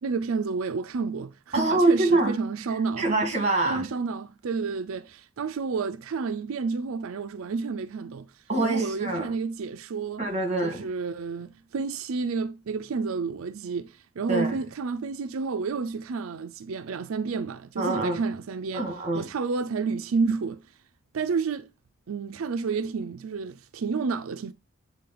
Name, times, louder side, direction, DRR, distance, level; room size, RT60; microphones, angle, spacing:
voice 1, 0.0-3.1 3.6-10.3 10.6-18.9 19.1-20.7 21.1-21.7 22.1-24.5, right 4 dB, 90° right, 0.4 m, -30 dB
voice 2, 1.5-2.4 3.0-3.9 8.5-9.3 10.2-10.9 14.3-14.6 17.8-18.2 18.7-19.3, right 2 dB, 30° right, 1.9 m, -25 dB
8.4 x 3.8 x 3.8 m
head